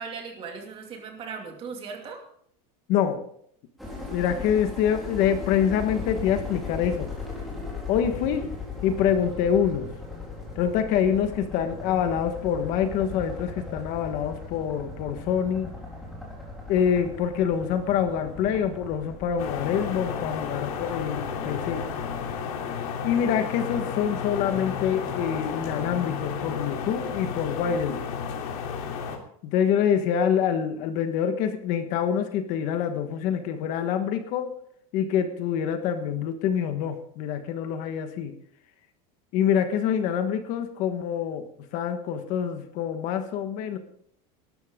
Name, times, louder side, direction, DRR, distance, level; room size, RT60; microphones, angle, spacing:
voice 1, 0.0-2.2, right 5 dB, 30° right, 3 dB, 2.5 m, -38 dB
voice 2, 2.9-3.2 4.1-7.1 7.9-8.5 8.8-9.9 10.6-15.7 16.7-21.9 23.0-28.1 29.4-34.5 34.9-38.3 39.3-41.5 41.7-43.8, left 8 dB, 45° left, 8 dB, 1.4 m, -26 dB
sound 1, 3.8-22.4, left 3 dB, ahead, 3.6 m, -38 dB
sound 2, 19.4-29.2, left 6 dB, 85° left, 3.1 m, -32 dB
19.5 x 12.5 x 3.7 m, 0.64 s
supercardioid pair, 170°, 19 cm